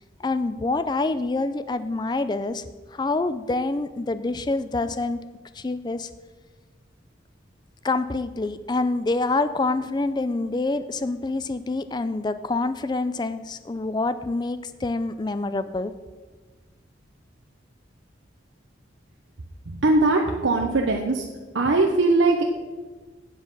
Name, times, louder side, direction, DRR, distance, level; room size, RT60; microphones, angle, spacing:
voice 1, 0.2-2.6 2.9-5.2 5.5-6.1 7.8-15.9, left 3 dB, 20° left, 12 dB, 0.3 m, -26 dB
voice 2, 19.7-21.3 21.5-22.4, right 2 dB, 80° right, 1 dB, 0.8 m, -20 dB
8.6 x 7.3 x 5.4 m, 1.3 s
head